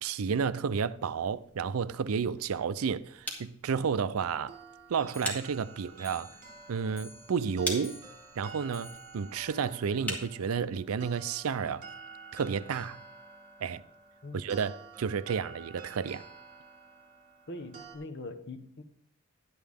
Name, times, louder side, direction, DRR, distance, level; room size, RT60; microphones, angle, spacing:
voice 1, 0.0-4.6 4.9-6.4 6.7-8.0 8.4-11.8 12.3-13.0 13.6-13.8 14.3-16.2, right 6 dB, 80° right, 0.5 m, -31 dB
sound 1, 1.2-11.0, equal, 5° left, 2.0 m, -44 dB
sound 2, 4.5-18.0, right 4 dB, 40° right, 2.8 m, -50 dB
Clock, 5.1-10.6 10.9-11.0 11.3-11.4 11.7-11.8 12.0-12.1 12.8-12.9 13.6-13.7 14.4-14.5, left 1 dB, 35° left, 4.3 m, -55 dB
voice 2, 17.5-18.8, left 2 dB, 55° left, 1.0 m, -42 dB
11.0 x 9.5 x 3.5 m
head